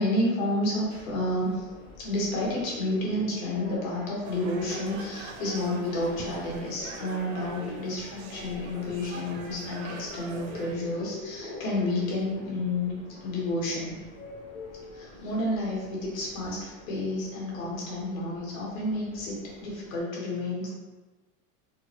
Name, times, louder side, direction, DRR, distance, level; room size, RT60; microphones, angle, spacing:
voice 1, 0.0-1.7 2.0-12.9 13.2-14.1 14.9-20.7, left 1 dB, 75° left, -4 dB, 1.4 m, -30 dB
Subway metro underground, 0.6-20.0, left 1 dB, 20° left, 0.4 m, -46 dB
sound 1, 4.2-10.7, right 4 dB, 70° right, 0.6 m, -43 dB
3.9 x 2.1 x 2.8 m, 1.2 s
supercardioid pair, 170°, 41 cm